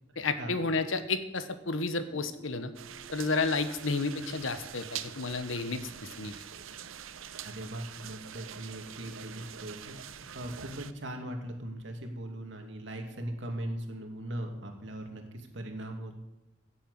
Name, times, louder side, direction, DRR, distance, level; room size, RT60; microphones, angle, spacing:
voice 1, 0.2-2.7 3.1-6.4, left 3 dB, 80° left, 10 dB, 1.2 m, -31 dB
Guitar, 2.0-5.7, right 3 dB, 20° left, 4.9 m, -58 dB
sound 1, 2.7-10.9, right 9 dB, 90° right, 0.8 m, -44 dB
voice 2, 7.4-16.2, right 1 dB, 65° right, 3 dB, 2.5 m, -39 dB
16.5 x 7.9 x 8.1 m, 0.96 s
head